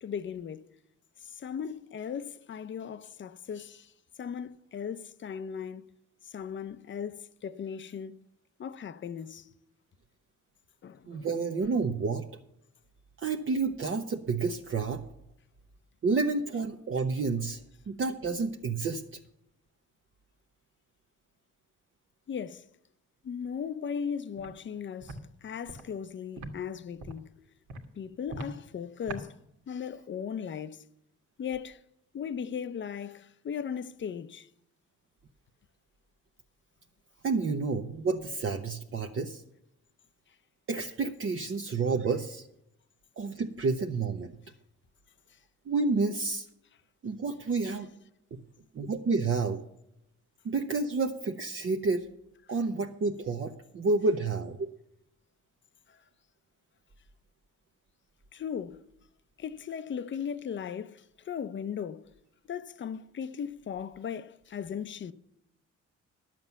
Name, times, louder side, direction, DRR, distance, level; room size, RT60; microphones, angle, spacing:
voice 1, 0.0-0.6 1.4-3.9 4.2-5.9 6.3-8.2 8.6-9.5 10.8-11.3 22.3-22.7 23.2-27.4 28.0-29.4 29.7-30.9 31.4-31.8 32.1-34.5 58.3-58.8 59.4-62.1 62.5-65.1, left 7 dB, 40° left, 0.7 m, -37 dB
voice 2, 11.1-12.2 13.2-15.0 16.0-17.6 17.9-19.2 37.2-39.4 40.7-42.5 43.2-44.4 45.7-46.5 47.0-47.9 48.7-49.6 50.4-52.1 52.5-54.6, right 4 dB, 45° right, 0.9 m, -29 dB
Walk footsteps, 24.4-24.5 25.0-25.2 25.7-25.8 26.4-26.5 27.0-27.2 27.7-27.8 28.3-28.5 29.1-29.2, right 2 dB, 70° right, 1.8 m, -40 dB
11.0 x 7.6 x 6.9 m
cardioid pair, 90°, 30 cm